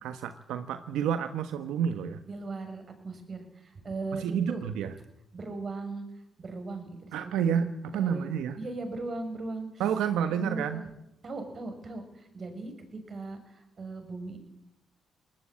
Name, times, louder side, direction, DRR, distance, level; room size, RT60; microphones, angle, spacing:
voice 1, 0.0-2.2 4.1-4.9 7.1-8.6 9.8-10.8, right 8 dB, 90° right, 9 dB, 1.4 m, -30 dB
voice 2, 2.3-4.7 5.3-6.0 6.4-7.6 7.9-8.3 8.6-9.8 10.2-10.9 11.2-14.4, right 3 dB, 40° right, 6 dB, 7.1 m, -38 dB
21.5 x 19.5 x 8.9 m, 0.81 s
cardioid pair, 90°, 0 cm